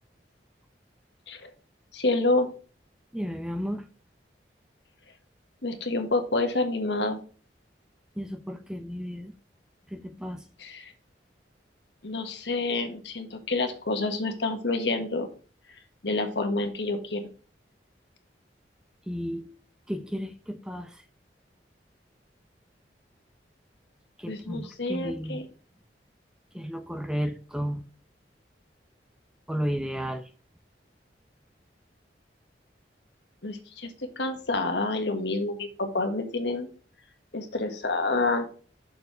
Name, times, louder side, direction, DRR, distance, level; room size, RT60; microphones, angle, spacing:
voice 1, 1.9-2.5 5.6-7.2 10.6-10.9 12.0-15.3 16.0-17.3 24.3-25.4 33.4-36.7 37.3-38.5, left 2 dB, 75° left, 1.5 m, -28 dB
voice 2, 3.1-3.9 8.2-9.3 9.9-10.5 19.1-19.5 19.9-21.0 24.2-25.4 26.5-27.8 29.5-30.3, equal, 5° right, 0.6 m, -33 dB
6.7 x 4.6 x 6.5 m
head